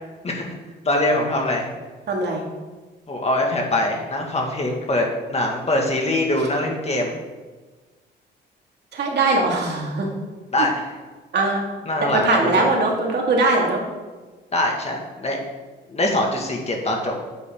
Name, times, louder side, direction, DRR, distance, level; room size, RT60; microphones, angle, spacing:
voice 1, 0.8-1.7 3.1-7.2 10.5-10.9 11.9-12.7 14.5-15.4 15.9-17.1, left 1 dB, 30° left, 1 dB, 2.2 m, -23 dB
voice 2, 2.1-2.4 8.9-10.1 11.3-11.7 12.1-13.8, right 2 dB, 60° right, 0 dB, 2.5 m, -20 dB
9.7 x 8.4 x 3.9 m, 1.3 s
cardioid pair, 90°, 20 cm